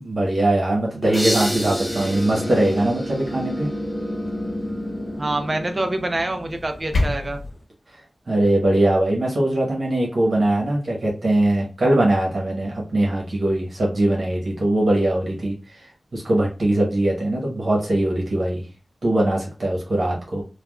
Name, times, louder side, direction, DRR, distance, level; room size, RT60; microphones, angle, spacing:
voice 1, 0.0-3.7 8.3-15.9 16.1-18.7 19.0-20.4, right 1 dB, 65° right, -2 dB, 1.1 m, -21 dB
sound 1, 1.0-7.6, equal, 15° left, 0.6 m, -31 dB
sound 2, 1.1-3.9, equal, 5° right, 0.9 m, -31 dB
voice 2, 5.2-7.4, right 2 dB, 40° right, 6 dB, 0.5 m, -26 dB
sound 3, 6.5-7.5, left 2 dB, 65° left, 0.9 m, -25 dB
3.3 x 2.3 x 2.3 m, 0.32 s
wide cardioid pair, 70°, 0 cm